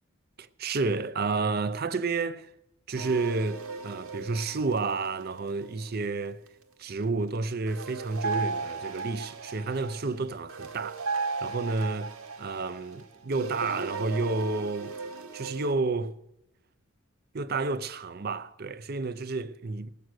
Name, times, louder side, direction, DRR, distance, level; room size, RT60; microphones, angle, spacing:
voice 1, 0.4-2.5 2.9-6.4 6.8-11.0 11.4-12.1 12.4-15.0 15.3-16.2 17.3-19.9, right 3 dB, 45° right, 0.6 m, -30 dB
sound 1, 3.0-6.5 7.7-15.7, right 4 dB, 75° right, 1.2 m, -36 dB
19.0 x 7.7 x 6.4 m
head